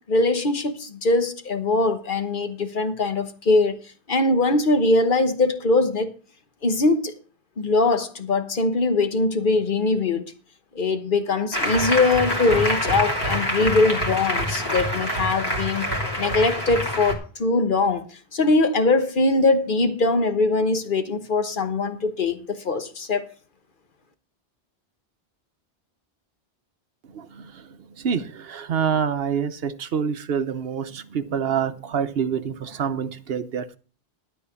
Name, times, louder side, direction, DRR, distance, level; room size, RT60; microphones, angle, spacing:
voice 1, 0.1-6.1 6.6-7.1 7.6-10.3 10.7-15.9 16.2-18.0 18.3-23.3, left 3 dB, 50° left, 1.3 m, -22 dB
Applause, 11.5-17.1, equal, 20° left, 3.1 m, -26 dB
voice 2, 27.1-27.6 28.0-33.8, right 7 dB, 65° right, 1.0 m, -26 dB
12.5 x 4.5 x 8.4 m
omnidirectional pair, 1.1 m